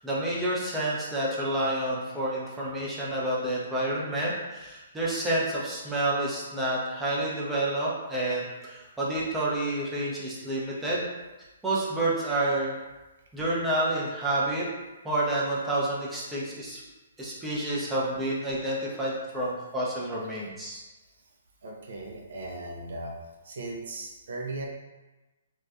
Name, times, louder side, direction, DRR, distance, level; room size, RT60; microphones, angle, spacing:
voice 1, 0.0-11.1 11.6-12.8 13.3-14.7 15.0-16.8 17.2-20.8, right 1 dB, 10° right, -7 dB, 0.6 m, -29 dB
voice 2, 21.6-23.2 23.4-24.7, right 2 dB, 65° right, -1 dB, 0.4 m, -37 dB
2.5 x 2.3 x 2.2 m, 1.1 s
figure-of-eight pair, 130°, 0 cm